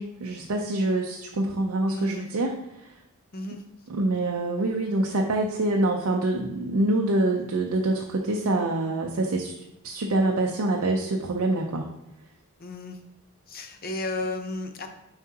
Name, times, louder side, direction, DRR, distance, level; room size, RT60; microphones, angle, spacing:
voice 1, 0.0-2.5 3.9-9.5 9.8-11.9, right 2 dB, 70° right, 0 dB, 0.5 m, -25 dB
voice 2, 1.9-2.3 3.3-3.6 12.6-13.0 13.5-14.9, left 2 dB, 40° left, 6 dB, 0.6 m, -33 dB
7.2 x 4.8 x 2.8 m, 0.87 s
head